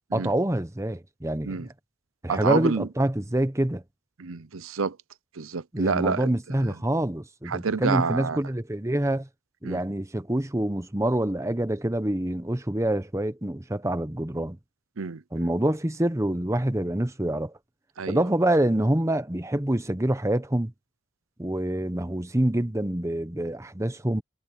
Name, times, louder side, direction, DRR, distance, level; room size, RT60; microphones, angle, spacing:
voice 1, 0.1-1.7 2.2-3.8 5.7-9.3 9.6-14.6 15.3-17.5 18.1-20.7 21.4-24.2, right 1 dB, 15° right, 1.0 m, -26 dB
voice 2, 2.3-2.9 4.2-5.0 5.3-6.8 7.5-8.4 9.6-9.8 15.0-15.5 18.0-18.2, right 5 dB, 90° right, 0.7 m, -28 dB
head